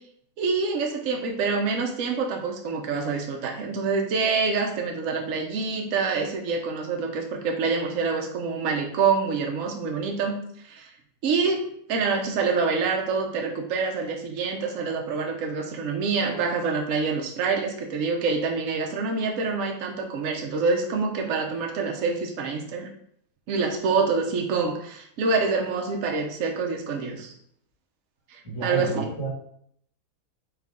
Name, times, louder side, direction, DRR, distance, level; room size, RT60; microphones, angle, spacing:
voice 1, 0.4-10.9 11.2-22.9 23.5-27.3 28.3-29.1, right 4 dB, 65° right, 1 dB, 1.0 m, -26 dB
voice 2, 28.4-29.3, right 3 dB, 15° right, -6 dB, 1.4 m, -30 dB
4.7 x 2.4 x 3.6 m, 0.67 s
omnidirectional pair, 1.7 m